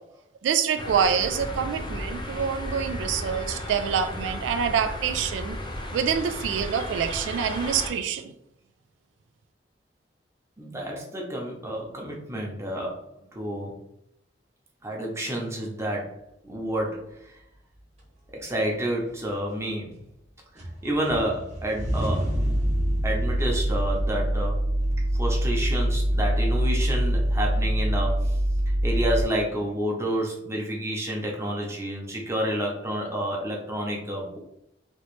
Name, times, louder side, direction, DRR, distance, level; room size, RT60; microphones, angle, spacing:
voice 1, 0.4-5.6 5.9-8.3, right 7 dB, 85° right, 10 dB, 0.3 m, -26 dB
sound 1, 0.8-7.9, left 1 dB, 25° left, 0.7 m, -34 dB
voice 2, 10.6-13.8 14.8-16.1 16.4-17.3 18.3-20.0 20.5-22.3 23.0-24.6 25.2-28.4 28.8-34.4, right 1 dB, 15° right, -1 dB, 0.8 m, -29 dB
sound 2, 17.3-17.4 18.0-18.7 19.1-20.2 20.6-29.2, equal, 35° right, 1.1 m, -35 dB
sound 3, 22.3-29.2, equal, 75° left, 0.9 m, -24 dB
3.1 x 2.8 x 3.1 m, 0.79 s
head